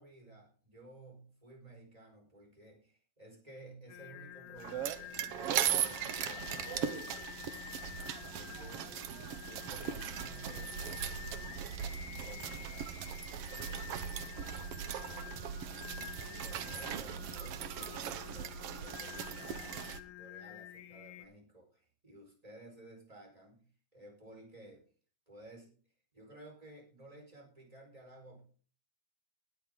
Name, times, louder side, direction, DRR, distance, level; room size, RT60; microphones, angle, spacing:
voice 1, 0.0-8.0 8.3-11.6 12.2-13.1 16.1-23.6 23.9-24.8 25.3-25.7 26.1-28.4, right 1 dB, 10° right, 0 dB, 4.5 m, -55 dB
Singing, 3.9-21.3, left 13 dB, 75° left, 2.3 m, -49 dB
sound 1, 4.6-20.0, right 10 dB, 85° right, 1.3 m, -39 dB
voice 2, 14.4-15.3, right 4 dB, 65° right, 2 dB, 2.9 m, -62 dB
19.5 x 7.5 x 3.8 m, 0.41 s
omnidirectional pair, 3.8 m